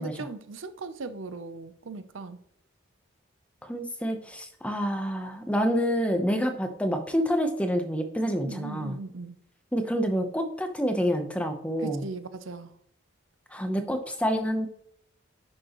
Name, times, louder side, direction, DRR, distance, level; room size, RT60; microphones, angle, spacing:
voice 1, 0.0-2.4 6.4-6.5 8.4-9.4 11.8-12.7, right 3 dB, 75° right, 12 dB, 0.6 m, -38 dB
voice 2, 3.6-9.0 9.7-12.1 13.5-14.7, equal, 5° left, 6 dB, 0.8 m, -28 dB
10.0 x 6.4 x 3.0 m, 0.71 s
head